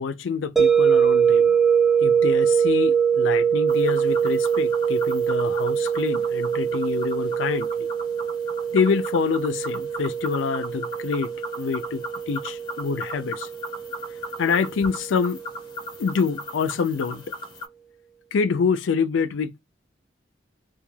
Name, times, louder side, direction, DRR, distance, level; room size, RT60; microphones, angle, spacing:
voice 1, 0.0-1.6 2.0-7.9 8.7-13.5 14.4-15.4 16.0-17.2 18.3-19.6, left 5 dB, 85° left, 0.4 m, -26 dB
sound 1, 0.6-15.5, right 7 dB, ahead, 0.4 m, -23 dB
sound 2, 3.7-17.6, left 1 dB, 25° left, 0.7 m, -37 dB
2.3 x 2.2 x 3.1 m
head